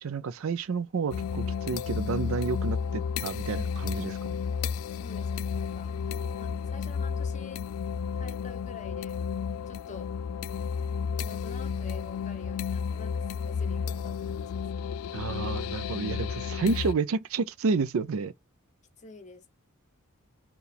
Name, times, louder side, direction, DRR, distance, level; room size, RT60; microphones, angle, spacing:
voice 1, 0.0-4.2 15.1-18.3, right 4 dB, 70° right, 0.4 m, -30 dB
sound 1, 1.1-16.9, left 6 dB, 75° left, 0.3 m, -32 dB
voice 2, 4.9-7.6 8.2-9.2 9.7-10.1 11.1-14.6 19.0-19.5, left 4 dB, 35° left, 0.8 m, -48 dB
4.6 x 2.3 x 3.3 m
head